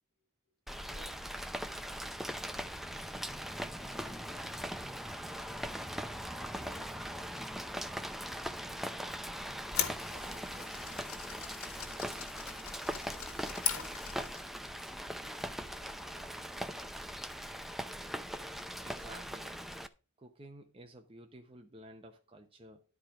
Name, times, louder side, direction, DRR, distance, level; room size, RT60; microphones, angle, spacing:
Rain, 0.7-19.9, equal, ahead, 0.5 m, -40 dB
voice 1, 0.8-1.4 3.1-3.4 3.8-4.6 5.9-7.4 8.6-8.9 10.1-11.2 13.2-13.9 14.8-15.3 15.6-17.0, left 1 dB, 40° left, 3.5 m, -59 dB
sound 1, 9.6-14.5, left 8 dB, 85° left, 1.6 m, -39 dB
voice 2, 18.8-19.6 20.2-22.8, right 1 dB, 25° right, 0.9 m, -53 dB
11.5 x 4.8 x 5.8 m
head